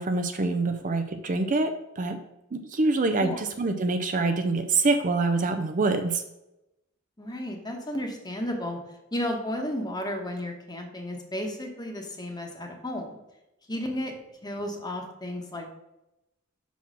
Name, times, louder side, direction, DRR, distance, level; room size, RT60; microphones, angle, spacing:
voice 1, 0.0-2.2 2.5-6.2, right 3 dB, 40° right, 7 dB, 0.6 m, -25 dB
voice 2, 7.2-8.8 9.1-13.2 13.7-14.1 14.4-15.7, left 1 dB, 20° left, 3 dB, 1.1 m, -33 dB
5.9 x 4.2 x 6.1 m, 0.90 s
head